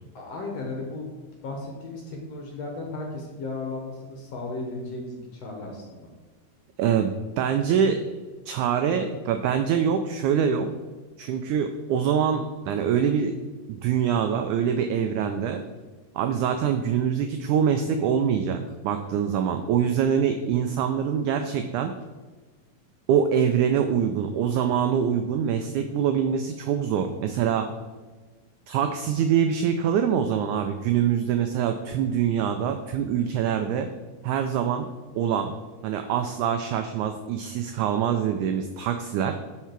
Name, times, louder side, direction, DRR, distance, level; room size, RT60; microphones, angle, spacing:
voice 1, 0.1-1.1 1.4-6.1, left 2 dB, 60° left, 0 dB, 2.0 m, -35 dB
voice 2, 6.8-8.0 8.5-10.7 11.2-13.3 13.7-15.6 16.1-21.9 23.1-27.7 28.7-33.9 34.2-34.9 35.1-35.5 35.8-39.4, right 8 dB, 85° right, 7 dB, 1.7 m, -24 dB
11.5 x 4.6 x 4.5 m, 1.3 s
omnidirectional pair, 4.1 m